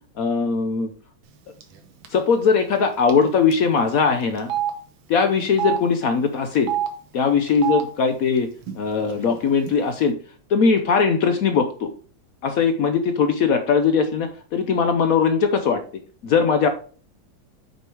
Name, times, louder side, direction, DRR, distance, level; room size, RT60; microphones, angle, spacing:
voice 1, 0.2-0.9 2.1-4.5 5.1-6.7 7.1-8.5 8.8-10.2 10.5-11.9 12.4-15.8 16.2-16.7, left 5 dB, 70° left, 8 dB, 0.8 m, -20 dB
Telephone, 1.6-1.8 2.1-2.2 3.1-3.2 3.5-3.6 4.4-4.7 5.5-5.8 6.6-6.9 7.5-7.8 8.6-8.7 9.0-9.7, right 12 dB, 85° right, 1.8 m, -26 dB
6.9 x 4.7 x 4.5 m, 0.43 s
omnidirectional pair, 2.1 m